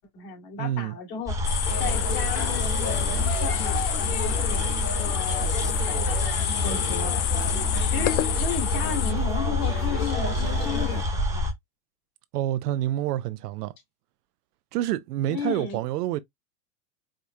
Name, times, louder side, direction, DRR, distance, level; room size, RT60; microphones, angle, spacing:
voice 1, 0.0-7.3 7.6-11.5 15.3-15.8, left 7 dB, 45° left, 2.2 m, -35 dB
voice 2, 0.6-1.0 12.3-13.7 14.7-16.2, right 13 dB, 70° right, 0.6 m, -27 dB
sound 1, 1.3-11.5, left 2 dB, 5° right, 1.1 m, -27 dB
sound 2, 1.4-9.1, left 15 dB, 65° left, 0.6 m, -30 dB
sound 3, 1.7-11.0, left 4 dB, 25° left, 1.0 m, -35 dB
4.9 x 2.3 x 2.7 m
supercardioid pair, 135°, 49 cm